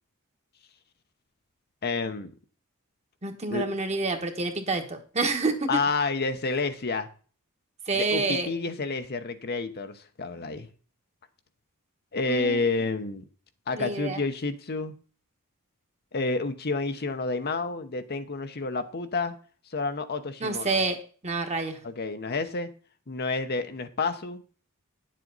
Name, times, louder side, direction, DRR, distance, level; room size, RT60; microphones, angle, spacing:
voice 1, 1.8-2.3 3.5-3.6 5.7-7.1 7.9-10.7 12.1-13.2 13.7-14.9 16.1-19.4 19.7-20.8 21.8-22.7 23.1-24.4, left 3 dB, 45° left, 0.9 m, -29 dB
voice 2, 3.2-5.8 7.9-8.5 12.3-12.6 13.8-14.2 20.4-21.0 21.2-21.8, right 3 dB, 30° right, 1.4 m, -28 dB
9.9 x 7.5 x 4.0 m
head